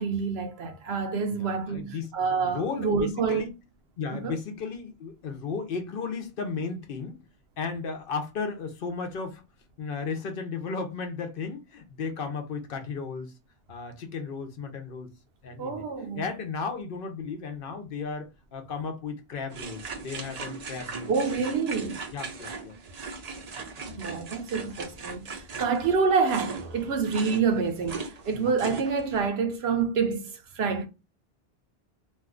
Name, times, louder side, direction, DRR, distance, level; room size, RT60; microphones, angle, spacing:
voice 1, 0.0-3.4 4.1-4.4 15.6-16.2 21.1-22.1 24.0-30.9, right 5 dB, 75° right, 0.9 m, -27 dB
voice 2, 1.3-3.5 4.0-7.2 7.6-9.4 9.8-13.3 13.7-15.1 15.4-15.8 16.1-21.1 22.1-22.7 25.5-25.6 28.3-28.5, left 5 dB, 65° left, 0.8 m, -35 dB
sound 1, 19.5-29.3, right 4 dB, 50° right, 0.6 m, -39 dB
2.6 x 2.3 x 3.6 m
omnidirectional pair, 1.1 m